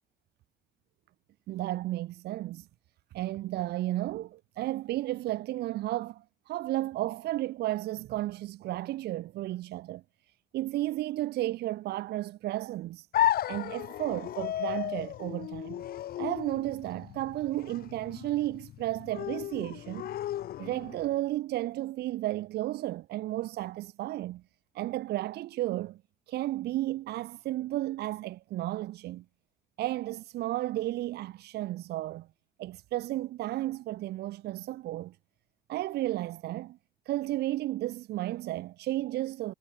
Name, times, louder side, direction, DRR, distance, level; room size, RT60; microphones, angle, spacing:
voice 1, 1.5-2.7 3.1-10.0 10.5-13.1 13.5-15.8 16.2-20.1 20.6-24.4 24.7-26.0 26.3-29.2 29.8-32.3 32.6-35.2 35.7-36.8 37.1-39.5, right 15 dB, 75° right, 2.4 m, -33 dB
sound 1, 13.1-21.1, left 12 dB, 65° left, 2.8 m, -34 dB
cardioid pair, 110°, 17 cm